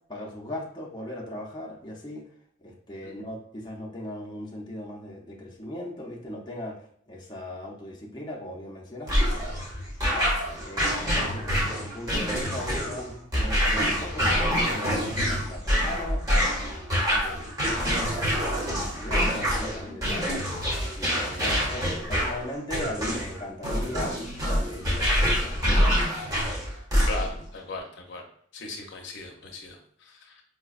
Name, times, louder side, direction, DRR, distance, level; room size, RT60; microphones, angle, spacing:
voice 1, 0.1-2.2 2.6-9.8 10.1-17.4 17.9-20.4 20.8-24.2 24.6-25.9, left 1 dB, 25° left, -2 dB, 0.5 m, -39 dB
sound 1, 9.1-27.5, equal, 20° right, 0.8 m, -26 dB
voice 2, 27.1-28.3 28.5-30.4, left 3 dB, 65° left, 2 dB, 0.6 m, -38 dB
4.7 x 2.2 x 2.4 m, 0.64 s
head